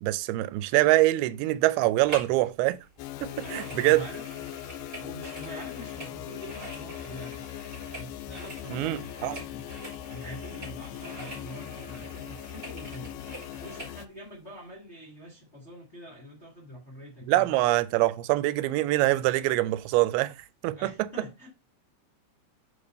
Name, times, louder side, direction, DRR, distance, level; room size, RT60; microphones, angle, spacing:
voice 1, 0.0-2.8 3.2-4.0 8.7-9.4 17.3-20.3 20.6-21.1, right 17 dB, 90° right, 2.5 m, -24 dB
sound 1, 2.0-2.4 2.7-14.0 14.5-14.6, right 2 dB, 25° right, 2.7 m, -45 dB
sound 2, 3.0-14.1, left 13 dB, 90° left, 1.9 m, -40 dB
voice 2, 3.4-4.2 5.0-7.4 7.9-9.6 10.1-13.1 13.5-17.5 20.7-21.5, equal, 35° left, 1.0 m, -44 dB
5.2 x 4.7 x 5.2 m
omnidirectional pair, 4.4 m